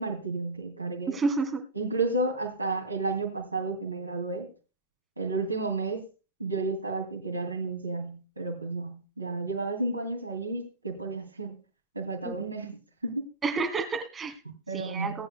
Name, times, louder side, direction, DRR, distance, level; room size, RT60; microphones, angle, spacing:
voice 1, 0.0-1.2 1.7-4.5 5.2-6.0 6.4-11.6 11.9-13.3 14.5-15.3, right 3 dB, 85° right, 2 dB, 2.5 m, -32 dB
voice 2, 1.1-1.6 12.2-12.3 13.4-14.3 14.7-15.3, right 4 dB, 20° right, 8 dB, 1.7 m, -29 dB
19.0 x 10.0 x 2.2 m, 0.32 s
figure-of-eight pair, 90°, 0 cm